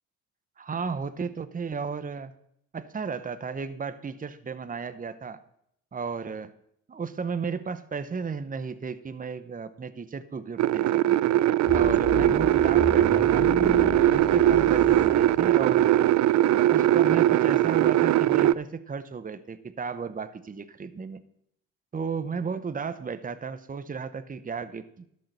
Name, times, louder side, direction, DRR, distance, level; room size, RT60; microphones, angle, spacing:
voice 1, 0.6-2.3 2.7-5.4 5.9-6.5 6.9-11.2 11.7-13.5 14.0-16.1 16.5-21.2 21.9-25.1, right 5 dB, 25° right, 12 dB, 0.9 m, -34 dB
sound 1, 10.6-18.5, right 13 dB, 60° right, 0.5 m, -21 dB
sound 2, 11.7-15.9, left 4 dB, 50° left, 2.1 m, -34 dB
11.5 x 6.5 x 6.8 m, 0.73 s
supercardioid pair, 70°, 32 cm